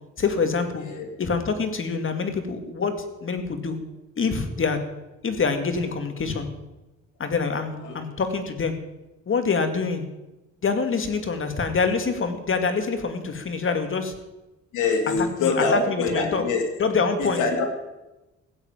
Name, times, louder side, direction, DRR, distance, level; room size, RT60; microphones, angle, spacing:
voice 1, 0.2-0.8 1.2-3.8 4.2-4.8 5.2-6.5 7.2-8.8 9.3-10.0 10.6-14.1 15.2-16.4 16.8-17.4, left 4 dB, 40° left, 7 dB, 2.3 m, -25 dB
voice 2, 14.7-16.6 17.4-17.7, left 4 dB, 80° left, 4 dB, 3.0 m, -24 dB
15.5 x 8.2 x 9.1 m, 1.0 s
cardioid pair, 90°, 30 cm